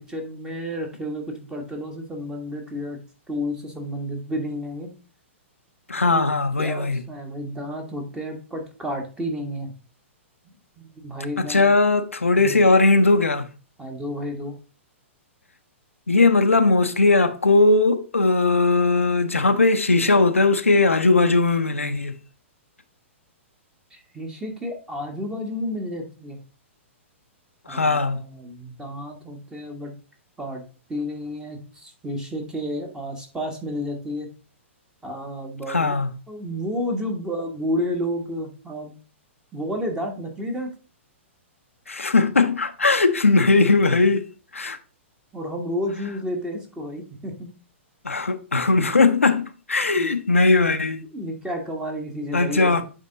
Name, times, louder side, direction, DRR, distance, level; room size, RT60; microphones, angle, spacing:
voice 1, 0.0-3.0 3.3-4.9 6.1-6.2 6.6-9.7 10.8-11.7 12.4-12.6 13.8-14.6 23.9-26.4 27.7-29.9 30.4-30.6 30.9-34.3 35.0-35.9 36.3-38.9 39.5-40.7 45.3-47.5 50.0-50.1 51.1-52.8, equal, 10° right, 1.5 m, -31 dB
voice 2, 5.9-7.0 11.4-13.5 16.1-22.1 27.7-28.2 35.7-36.1 41.9-44.3 44.5-44.8 48.0-51.0 52.3-52.8, left 3 dB, 80° left, 0.6 m, -19 dB
8.2 x 3.6 x 3.8 m
figure-of-eight pair, 110°, 7 cm